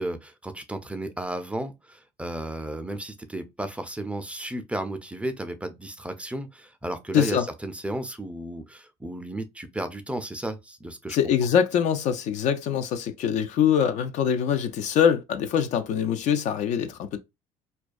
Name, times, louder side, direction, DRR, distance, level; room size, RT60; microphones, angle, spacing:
voice 1, 0.0-11.2, right 1 dB, 10° right, 0.4 m, -33 dB
voice 2, 7.1-7.5 11.1-17.2, left 8 dB, 55° left, 0.4 m, -23 dB
2.2 x 2.2 x 2.4 m
hypercardioid pair, 70°, 14 cm